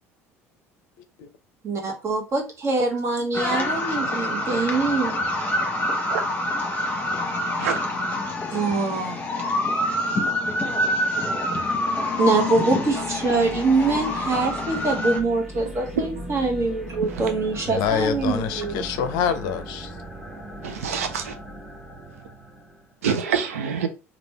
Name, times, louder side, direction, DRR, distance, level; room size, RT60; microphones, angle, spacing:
voice 1, 1.6-5.2 8.5-9.2 12.2-18.8, right 3 dB, 35° right, 1.2 m, -24 dB
sound 1, 3.3-15.2, left 1 dB, 25° left, 1.1 m, -26 dB
sound 2, 12.4-22.9, right 1 dB, 5° right, 1.0 m, -39 dB
voice 2, 17.7-19.9, left 8 dB, 60° left, 0.5 m, -26 dB
voice 3, 20.6-21.3 23.0-23.9, right 6 dB, 75° right, 0.5 m, -26 dB
3.2 x 2.4 x 3.2 m
figure-of-eight pair, 65°, 8 cm